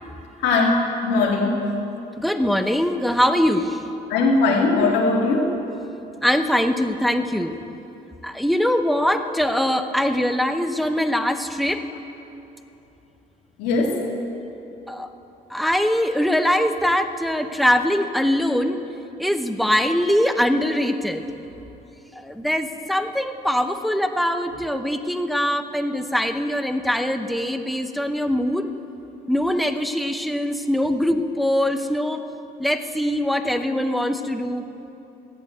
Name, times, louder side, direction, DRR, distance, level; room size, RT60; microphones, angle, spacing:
voice 1, 0.4-1.6 4.1-5.5 13.6-14.0, left 3 dB, 90° left, -1 dB, 2.2 m, -20 dB
voice 2, 2.2-3.8 6.2-7.5 8.2-11.8 14.9-15.1 15.5-18.8 19.2-21.2 22.2-28.7 29.3-32.2 32.6-34.6, equal, ahead, 7 dB, 0.7 m, -22 dB
13.5 x 8.9 x 7.7 m, 3.0 s
cardioid pair, 110°, 17 cm